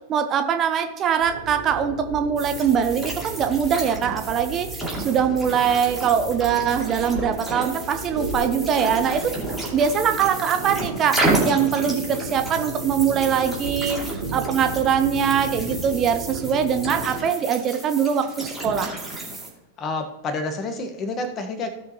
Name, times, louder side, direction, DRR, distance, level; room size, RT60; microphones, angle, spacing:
voice 1, 0.1-9.4 9.7-18.9, right 7 dB, 30° right, 8 dB, 0.7 m, -22 dB
sound 1, 1.2-17.2, right 3 dB, 75° right, 1.8 m, -34 dB
sound 2, 2.4-19.5, right 2 dB, 5° right, 2.6 m, -31 dB
voice 2, 19.8-21.7, left 2 dB, 30° left, 6 dB, 1.4 m, -29 dB
16.0 x 6.2 x 3.0 m, 0.98 s
figure-of-eight pair, 90°, 0 cm